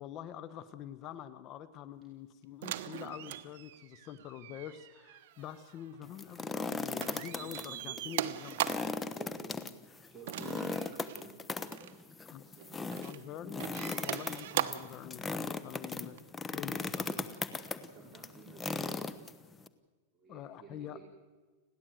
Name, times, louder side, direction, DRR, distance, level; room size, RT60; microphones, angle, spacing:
voice 1, 0.0-8.6 12.3-12.4 13.0-16.2 16.5-17.3 20.3-21.0, left 10 dB, 35° left, 14 dB, 1.1 m, -46 dB
sound 1, 2.6-6.7 7.0-9.0 10.3-11.2 11.7-11.9 12.6-13.2 13.6-15.0 16.2-16.3, right 12 dB, 65° right, 1.2 m, -40 dB
sound 2, 6.0-7.7 8.0-8.1 8.5-19.7, left 4 dB, 15° left, 1.1 m, -38 dB
voice 2, 7.2-8.0 9.1-11.6 12.4-13.4 16.7-19.2 20.1-21.0, right 4 dB, 20° right, -3 dB, 4.7 m, -54 dB
30.0 x 11.0 x 9.1 m, 1.4 s
supercardioid pair, 135°, 0 cm